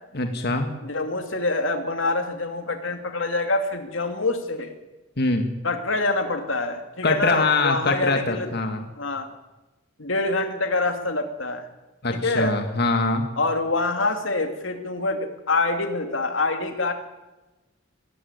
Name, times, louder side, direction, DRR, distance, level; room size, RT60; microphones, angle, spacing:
voice 1, 0.1-0.7 5.2-5.5 7.0-8.8 12.0-13.3, left 3 dB, 55° left, 6 dB, 2.1 m, -23 dB
voice 2, 0.8-4.7 5.6-8.5 9.0-9.3 10.0-11.7 12.1-12.5 13.4-16.9, left 2 dB, 80° left, 6 dB, 2.5 m, -25 dB
22.5 x 14.0 x 9.8 m, 1.1 s
head